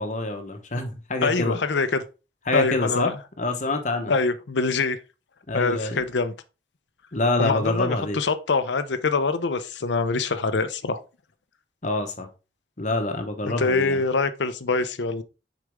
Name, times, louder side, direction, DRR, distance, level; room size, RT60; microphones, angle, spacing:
voice 1, 0.0-1.6 2.5-3.1 3.4-4.1 5.5-6.0 7.1-8.2 11.8-12.3 12.8-14.0, left 2 dB, 40° left, 1.0 m, -26 dB
voice 2, 1.2-2.0 2.5-3.2 4.1-5.0 5.5-6.3 7.4-11.0 13.4-15.2, left 4 dB, 80° left, 0.7 m, -24 dB
6.3 x 5.0 x 3.6 m
head